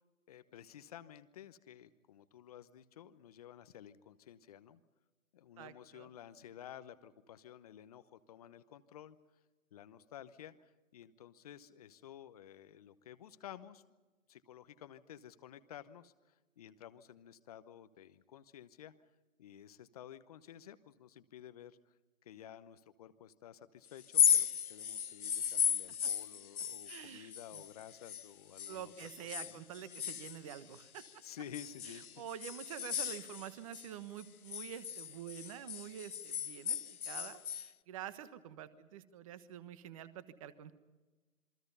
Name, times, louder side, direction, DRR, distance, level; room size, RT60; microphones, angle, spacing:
voice 1, 0.3-4.8 5.3-9.2 9.7-13.8 14.3-16.1 16.6-18.9 19.4-21.8 22.2-29.6 31.2-32.1, left 10 dB, 25° left, 13 dB, 0.9 m, -53 dB
voice 2, 5.6-6.1 26.9-27.6 28.7-31.0 31.8-40.7, right 10 dB, 25° right, 14 dB, 1.3 m, -47 dB
sound 1, 24.0-28.3 28.6-31.1 31.5-33.9 34.2-37.7, left 8 dB, 85° left, 0.8 m, -35 dB
27.0 x 23.5 x 5.5 m, 1.2 s
hypercardioid pair, 155°, 42 cm